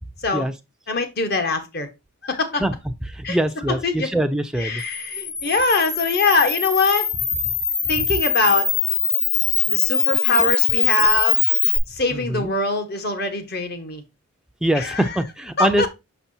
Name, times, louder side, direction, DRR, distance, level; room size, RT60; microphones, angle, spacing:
voice 1, 0.9-1.9 2.2-2.6 3.2-3.4 3.7-4.1 4.6-7.1 7.9-8.7 9.7-11.4 11.9-14.0 14.7-15.2 15.6-15.9, left 3 dB, 45° left, 1.3 m, -23 dB
voice 2, 3.1-4.8 12.1-12.5 14.6-15.9, right 1 dB, 5° right, 0.5 m, -23 dB
Camera, 4.8-11.8, left 6 dB, 70° left, 1.9 m, -22 dB
6.1 x 5.8 x 2.8 m
head